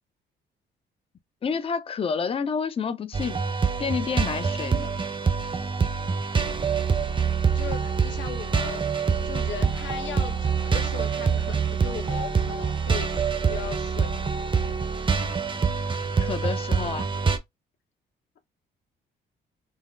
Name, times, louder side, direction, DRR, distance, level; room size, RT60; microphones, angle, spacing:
voice 1, 1.4-3.4 3.8-4.9 16.2-17.1, left 6 dB, 30° left, 0.4 m, -29 dB
sound 1, 3.1-17.4, right 5 dB, 25° right, 0.6 m, -25 dB
voice 2, 7.5-14.1, left 8 dB, 70° left, 0.9 m, -38 dB
3.9 x 2.0 x 2.5 m
cardioid pair, 90°, 20 cm